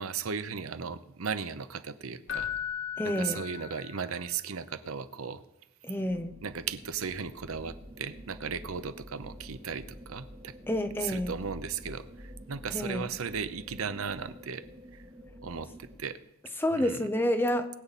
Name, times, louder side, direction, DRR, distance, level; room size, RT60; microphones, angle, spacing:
voice 1, 0.0-2.5 3.0-5.4 6.4-10.5 11.0-14.6 14.9-15.0 15.4-16.2 16.7-17.0, right 6 dB, 85° right, 13 dB, 0.7 m, -36 dB
Keyboard (musical), 2.3-4.2 7.5-7.7, left 9 dB, 75° left, 2.2 m, -37 dB
voice 2, 3.0-3.4 5.8-6.3 10.7-11.3 12.7-13.0 16.6-17.7, left 1 dB, 10° left, 7 dB, 0.8 m, -29 dB
sound 1, 5.9-16.0, equal, 30° right, 6.2 m, -48 dB
20.5 x 8.4 x 4.2 m, 0.90 s
head